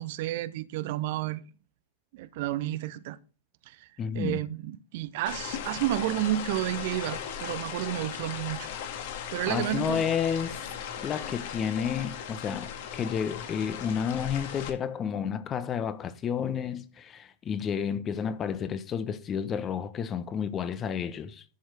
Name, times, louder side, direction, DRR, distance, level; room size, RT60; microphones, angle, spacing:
voice 1, 0.0-1.4 2.1-3.2 3.7-3.9 4.1-8.7 9.3-10.0, right 14 dB, 50° right, 0.6 m, -31 dB
voice 2, 4.0-4.4 9.5-10.6 11.0-21.4, left 7 dB, 25° left, 1.0 m, -31 dB
sound 1, 5.3-14.7, left 8 dB, 50° left, 1.9 m, -37 dB
11.5 x 6.4 x 4.8 m
figure-of-eight pair, 90°, 0 cm